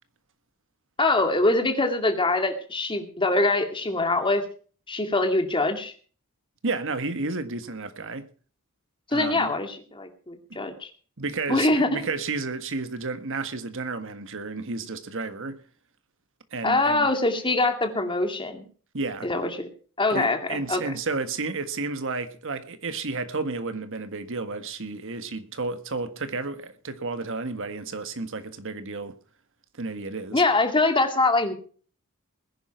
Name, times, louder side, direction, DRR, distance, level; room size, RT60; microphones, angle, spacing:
voice 1, 1.0-4.4 4.9-5.9 9.1-10.9 11.5-12.1 16.6-18.6 19.2-19.7 20.0-20.9 30.3-31.5, left 2 dB, 25° left, 2.4 m, -24 dB
voice 2, 6.6-8.3 9.1-9.5 11.2-15.6 16.5-17.1 18.9-19.3 20.1-29.2 29.8-30.4, right 3 dB, 60° right, 1.6 m, -32 dB
20.5 x 10.5 x 4.5 m
head